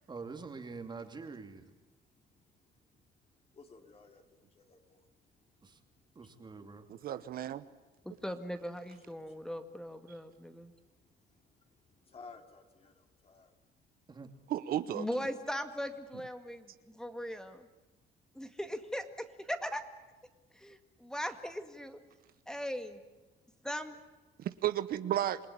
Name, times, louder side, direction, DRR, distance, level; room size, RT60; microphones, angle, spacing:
voice 1, 0.1-1.7 5.6-5.8 6.1-6.9 14.1-14.3, right 4 dB, 25° right, 6 dB, 2.8 m, -45 dB
voice 2, 1.9-6.4 7.6-8.1 9.0-9.5 10.1-14.0 20.7-20.8 22.2-22.5 23.3-23.6 24.3-24.5, left 4 dB, 35° left, 5 dB, 3.2 m, -60 dB
voice 3, 7.0-7.6 14.5-15.0 24.4-25.4, right 12 dB, 60° right, 13 dB, 1.0 m, -33 dB
voice 4, 8.1-10.7 14.9-17.7 18.3-19.8 20.5-22.0 22.5-23.0 23.6-24.0, equal, 5° left, 8 dB, 2.0 m, -39 dB
27.5 x 19.5 x 10.0 m, 1.2 s
cardioid pair, 110°, 17 cm